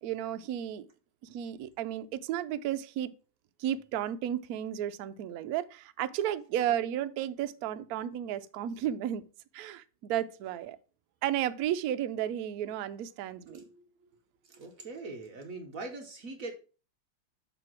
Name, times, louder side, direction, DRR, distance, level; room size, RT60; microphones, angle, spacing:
voice 1, 0.0-0.9 1.2-3.1 3.6-9.2 9.5-10.8 11.2-13.6, right 11 dB, 90° right, 0.8 m, -33 dB
voice 2, 13.5-13.8 14.4-16.5, right 3 dB, 55° right, 1.1 m, -42 dB
6.9 x 3.4 x 6.0 m
omnidirectional pair, 2.2 m